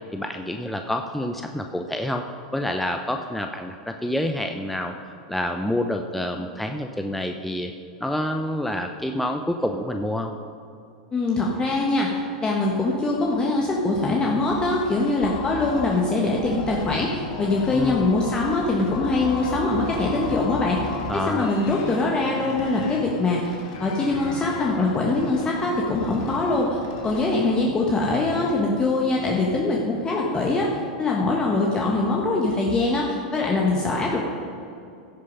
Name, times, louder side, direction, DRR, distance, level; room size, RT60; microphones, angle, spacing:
voice 1, 0.1-2.2 2.5-4.9 5.3-7.7 8.0-10.3 17.7-18.1 21.1-21.5, left 1 dB, 5° left, 4 dB, 0.6 m, -27 dB
voice 2, 11.1-12.1 12.4-23.5 23.8-30.7 31.0-34.2, left 2 dB, 20° left, -2 dB, 1.5 m, -23 dB
sound 1, 14.5-27.6, left 3 dB, 60° left, 1.7 m, -35 dB
16.0 x 6.7 x 5.4 m, 2.4 s
hypercardioid pair, 100°, 4 cm